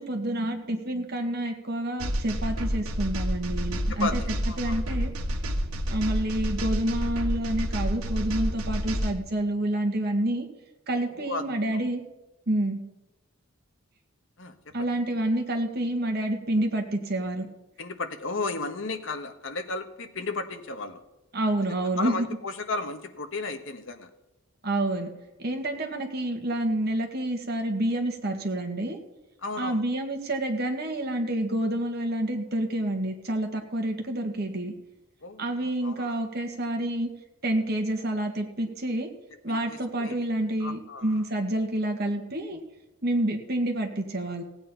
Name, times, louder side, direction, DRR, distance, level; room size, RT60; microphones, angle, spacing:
voice 1, 0.0-4.2 4.6-5.1 5.9-10.5 10.9-12.0 12.5-12.8 14.7-17.5 21.3-22.3 24.6-25.1 25.4-29.0 29.6-34.7 35.4-37.1 37.4-39.1 39.4-42.6 43.0-44.4, right 1 dB, 45° right, 3 dB, 1.9 m, -28 dB
sound 1, 2.0-9.1, equal, 80° right, 1.6 m, -29 dB
voice 2, 3.9-4.8 11.1-11.4 14.4-14.9 17.8-21.0 22.0-24.1 29.4-29.8 35.2-36.2 39.5-40.2 40.6-41.2, left 3 dB, 60° left, 7 dB, 1.3 m, -34 dB
16.5 x 8.7 x 5.7 m, 1.0 s
head